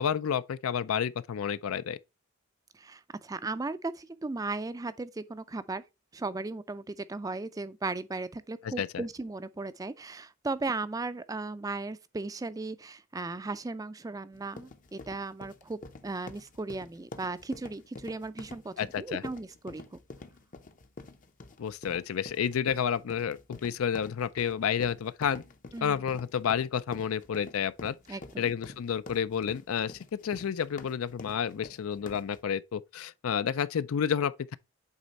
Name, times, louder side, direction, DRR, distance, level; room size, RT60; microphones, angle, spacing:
voice 1, 0.0-2.0 8.6-9.0 18.8-19.2 21.6-25.4 25.8-34.6, left 8 dB, 80° left, 0.4 m, -30 dB
voice 2, 2.7-5.8 6.1-19.8 25.7-26.0 28.1-28.5, right 3 dB, 15° right, 0.3 m, -36 dB
sound 1, 14.3-32.4, left 3 dB, 40° left, 0.6 m, -47 dB
8.2 x 3.5 x 4.1 m
head